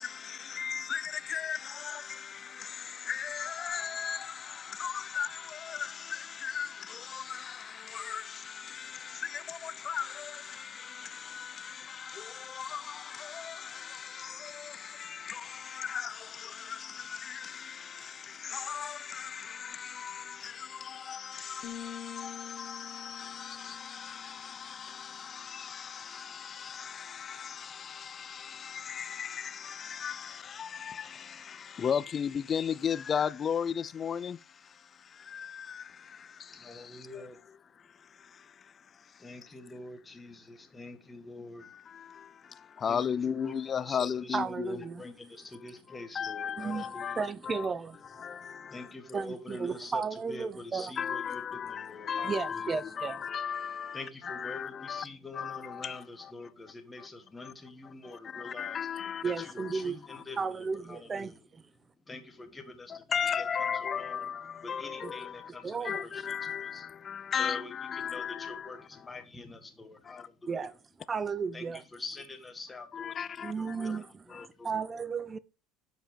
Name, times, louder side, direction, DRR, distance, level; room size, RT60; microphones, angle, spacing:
voice 1, 0.0-37.2 37.8-39.3 41.6-44.9 45.9-47.7 48.1-48.9 51.0-55.1 55.3-56.3 57.0-57.1 57.4-57.5 58.0-59.7 60.1-60.2 62.9-65.5 65.8-68.8 70.0-70.3 72.9-74.0 74.3-74.5, left 7 dB, 30° left, 0.3 m, -37 dB
sound 1, 21.6-25.3, left 9 dB, 50° left, 1.4 m, -47 dB
voice 2, 36.5-37.4 39.2-41.9 42.4-42.5 42.9-47.2 48.6-52.8 53.9-58.8 59.2-61.4 62.1-63.3 63.7-64.3 64.6-66.9 67.3-70.5 71.5-74.8, left 3 dB, 15° left, 1.7 m, -46 dB
voice 3, 44.3-45.0 46.6-48.0 49.1-50.9 52.2-53.2 59.2-60.0 60.4-61.6 65.0-65.1 65.6-66.0 70.5-70.7 71.1-71.8 73.4-74.1 74.6-75.4, right 5 dB, 25° right, 0.5 m, -34 dB
7.4 x 5.1 x 5.1 m
supercardioid pair, 115°, 0 cm